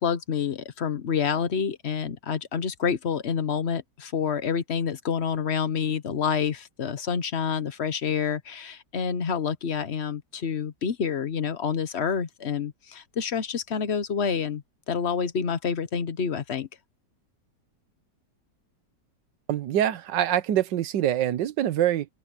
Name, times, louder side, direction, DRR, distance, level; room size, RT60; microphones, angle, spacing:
voice 1, 0.0-16.7, left 6 dB, 45° left, 1.0 m, -28 dB
voice 2, 19.5-22.1, right 11 dB, 75° right, 1.5 m, -24 dB
open air
omnidirectional pair, 2.0 m